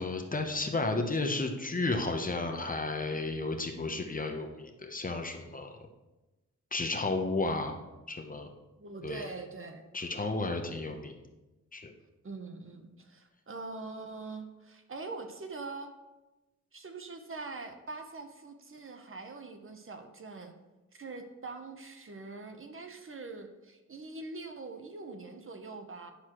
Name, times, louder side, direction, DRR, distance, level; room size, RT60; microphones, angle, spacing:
voice 1, 0.0-5.7 6.7-7.8 8.1-8.5 9.0-9.2 9.9-11.2 11.7-11.9, left 3 dB, 30° left, 4 dB, 0.7 m, -32 dB
voice 2, 8.8-9.8 12.2-15.9 16.7-20.5 20.9-26.1, right 3 dB, 45° right, 5 dB, 0.8 m, -43 dB
9.8 x 6.1 x 3.0 m, 1.1 s
wide cardioid pair, 110°, 30 cm